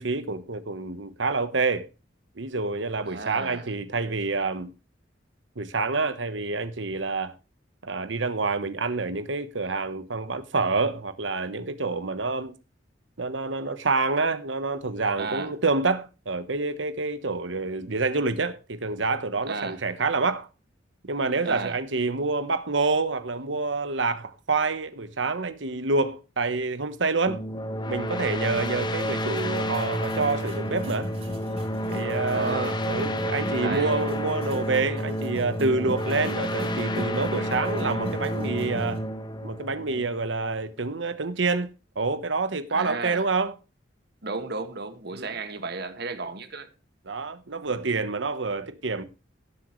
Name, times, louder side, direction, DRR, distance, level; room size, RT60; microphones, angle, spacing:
voice 1, 0.0-1.9 2.4-4.7 5.6-7.3 7.8-12.5 13.2-20.5 21.1-27.4 27.9-31.1 31.9-39.0 39.4-41.7 41.9-43.5 45.1-45.3 47.1-49.0, right 3 dB, 85° right, 1.2 m, -27 dB
voice 2, 3.1-3.7 15.2-15.5 19.5-19.8 21.4-21.8 32.3-32.9 33.6-34.0 42.7-43.2 44.2-46.7, right 3 dB, 60° right, 1.9 m, -33 dB
sound 1, 27.3-40.6, equal, 25° left, 1.4 m, -30 dB
sound 2, 28.5-39.0, equal, 35° right, 3.7 m, -38 dB
18.0 x 8.0 x 3.2 m
head